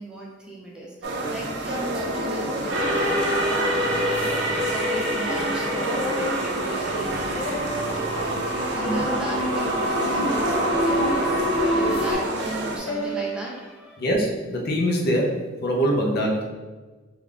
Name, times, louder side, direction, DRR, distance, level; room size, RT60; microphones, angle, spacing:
voice 1, 0.0-14.0, right 1 dB, 5° right, -3 dB, 0.6 m, -37 dB
sound 1, 1.0-12.8, right 2 dB, 60° right, 0.5 m, -29 dB
sound 2, 2.7-12.1, equal, 80° right, 1.0 m, -26 dB
sound 3, 5.8-6.4 7.3-7.9 8.8-9.2 10.2-10.7 11.6-12.1 12.9-13.2, equal, 70° left, 0.9 m, -31 dB
voice 2, 14.0-15.3 15.6-16.5, equal, 55° left, 0 dB, 0.6 m, -23 dB
3.7 x 2.4 x 3.3 m, 1.3 s
head